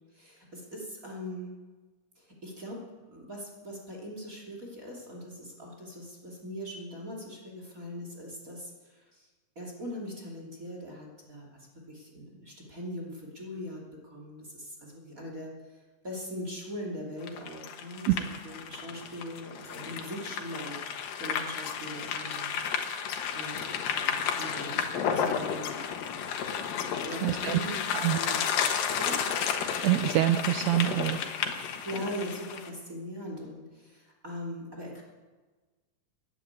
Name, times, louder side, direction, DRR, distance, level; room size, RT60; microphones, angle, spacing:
voice 1, 0.1-1.6 2.2-2.8 3.1-9.3 9.5-22.6 22.9-23.1 23.3-25.7 27.0-28.7 29.0-29.2 31.8-35.0, equal, 25° right, -1 dB, 2.9 m, -41 dB
sound 1, 17.2-32.7, left 7 dB, 90° left, 3.0 m, -32 dB
voice 2, 27.2-27.6 27.9-28.2 29.8-31.2, right 14 dB, 85° right, 9 dB, 1.6 m, -25 dB
15.0 x 10.0 x 9.5 m, 1.3 s
omnidirectional pair, 3.9 m